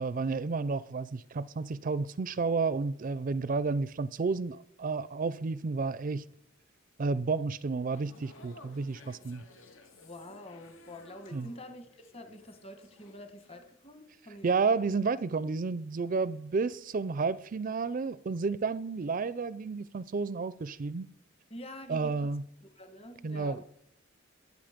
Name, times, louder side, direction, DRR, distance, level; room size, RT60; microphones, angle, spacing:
voice 1, 0.0-6.2 7.0-9.4 11.3-11.5 14.4-21.1 21.9-22.4 23.2-23.7, right 4 dB, 45° right, 0.4 m, -31 dB
sound 1, 7.8-14.0 14.3-14.6, left 2 dB, 85° left, 2.1 m, -57 dB
voice 2, 10.0-14.5 21.5-22.4 22.6-23.6, left 1 dB, 30° left, 1.4 m, -47 dB
22.5 x 8.3 x 5.1 m
head